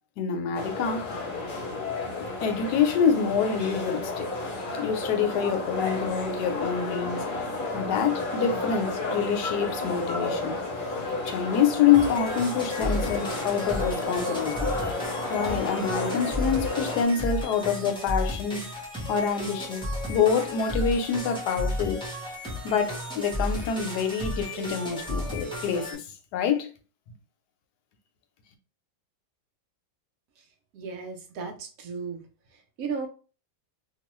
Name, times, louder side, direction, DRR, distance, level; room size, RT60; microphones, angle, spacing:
voice 1, 0.2-1.1 2.4-4.3 4.8-7.2 7.7-10.6 11.3-14.7 15.3-18.7 19.1-22.0 22.6-26.0 26.3-26.7, left 7 dB, 80° left, 1.2 m, -26 dB
sound 1, 0.5-17.0, left 2 dB, 45° left, 0.7 m, -32 dB
sound 2, 11.9-25.9, left 1 dB, 5° left, 0.4 m, -33 dB
voice 2, 30.7-32.2 32.5-33.1, right 5 dB, 70° right, 1.0 m, -35 dB
2.9 x 2.2 x 3.0 m
omnidirectional pair, 1.7 m